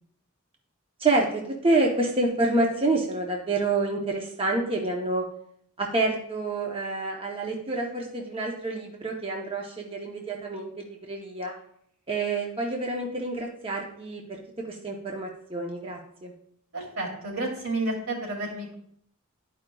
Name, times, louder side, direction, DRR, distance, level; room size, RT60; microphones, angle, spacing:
voice 1, 1.0-5.2 5.8-11.5 12.1-14.4 14.7-16.3, right 2 dB, 25° right, 0 dB, 0.7 m, -28 dB
voice 2, 16.7-18.7, right 2 dB, 80° right, -3 dB, 2.2 m, -31 dB
11.0 x 4.9 x 2.3 m, 0.68 s
head